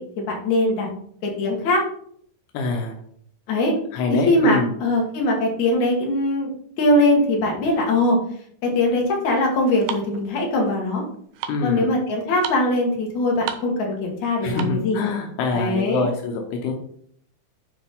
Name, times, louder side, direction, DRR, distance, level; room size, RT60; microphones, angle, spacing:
voice 1, 0.2-0.9 1.2-1.8 3.5-3.7 4.1-6.5 6.8-8.2 8.6-11.0 11.6-15.0 15.5-16.1, left 1 dB, 55° left, -1 dB, 2.7 m, -21 dB
voice 2, 2.5-2.9 3.9-4.7 11.5-11.9 14.4-16.7, left 3 dB, 85° left, 2 dB, 3.0 m, -25 dB
sound 1, 8.7-14.9, right 9 dB, 75° right, 2.4 m, -36 dB
9.2 x 5.1 x 3.7 m, 0.63 s
omnidirectional pair, 4.5 m